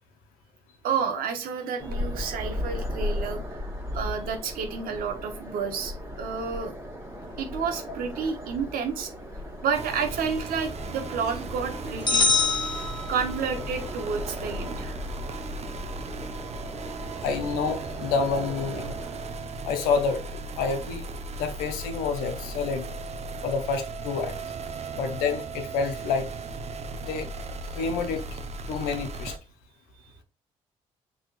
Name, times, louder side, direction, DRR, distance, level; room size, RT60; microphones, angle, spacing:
voice 1, 0.8-3.6 3.9-6.7 7.4-9.1 9.6-12.3 13.1-15.0, right 6 dB, 75° right, 1.0 m, -30 dB
sound 1, 1.8-19.7, left 1 dB, 15° right, 1.4 m, -37 dB
sound 2, 9.7-29.4, right 3 dB, 45° right, 0.7 m, -37 dB
sound 3, 12.1-13.6, left 3 dB, 30° left, 1.0 m, -24 dB
voice 2, 17.2-19.0 19.6-21.1 21.4-22.9 23.4-24.3 24.9-26.3 27.0-27.3 27.7-28.4 28.7-29.4, left 5 dB, 85° left, 0.7 m, -28 dB
6.4 x 2.8 x 2.5 m
supercardioid pair, 55°, 15 cm